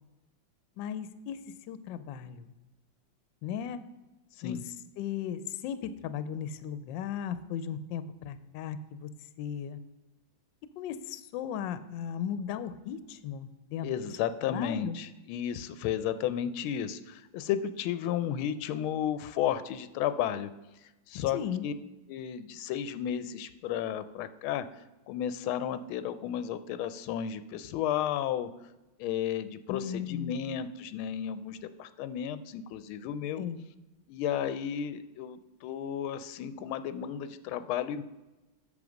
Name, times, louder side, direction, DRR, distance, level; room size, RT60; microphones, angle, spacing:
voice 1, 0.8-1.4 1.7-2.5 3.4-3.8 4.4-4.6 5.0-9.1 9.4-9.8 10.8-13.9 14.5-14.9 21.3-21.6 29.7-30.4 33.4-33.6, left 9 dB, 75° left, 13 dB, 1.2 m, -36 dB
voice 2, 13.8-20.5 21.1-21.7 22.1-28.5 29.0-33.5 34.1-38.0, left 9 dB, 90° left, 13 dB, 1.4 m, -33 dB
8.5 x 6.6 x 5.1 m, 1.1 s
omnidirectional pair, 2.2 m